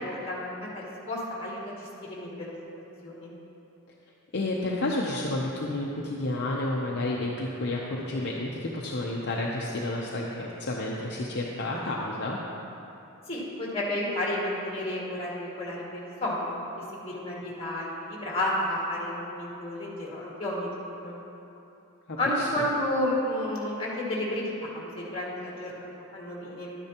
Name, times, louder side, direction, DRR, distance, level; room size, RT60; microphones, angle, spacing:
voice 1, 0.0-2.5 3.0-3.3 13.3-21.2 22.1-25.9 26.1-26.7, left 1 dB, 25° left, -5 dB, 2.0 m, -31 dB
voice 2, 4.3-12.4 22.1-22.5, left 2 dB, 50° left, -3 dB, 0.7 m, -30 dB
11.5 x 9.9 x 2.9 m, 2.9 s
head